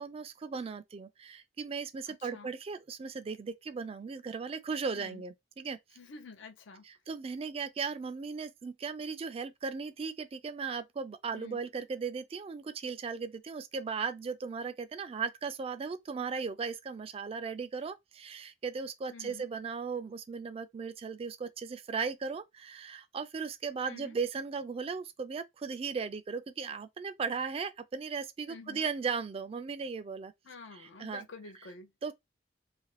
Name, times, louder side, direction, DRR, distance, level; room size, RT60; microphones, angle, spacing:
voice 1, 0.0-5.8 6.9-30.3 30.7-31.2 32.0-32.1, right 5 dB, 30° right, 0.3 m, -37 dB
voice 2, 2.1-2.5 4.9-5.2 6.0-6.8 11.3-11.6 19.1-19.4 23.8-24.2 28.5-28.8 30.4-31.9, left 4 dB, 80° left, 0.6 m, -49 dB
2.5 x 2.5 x 3.2 m
head